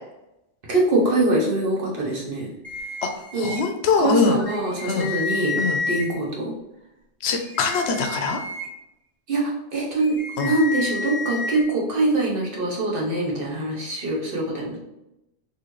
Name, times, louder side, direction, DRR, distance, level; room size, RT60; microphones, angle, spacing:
voice 1, 0.7-2.5 3.3-3.5 4.0-5.6 5.9-6.5 9.3-10.2 10.4-14.8, right 2 dB, 55° right, -3 dB, 1.1 m, -23 dB
sound 1, 2.6-3.6 4.4-6.1 7.4-8.7 10.0-11.6, left 3 dB, 15° left, 0.7 m, -30 dB
voice 2, 3.4-4.4 4.9-5.1 5.6-5.8 7.2-8.4 10.4-10.5, left 5 dB, 75° left, 5 dB, 0.8 m, -22 dB
4.0 x 2.7 x 3.1 m, 0.89 s
omnidirectional pair, 1.1 m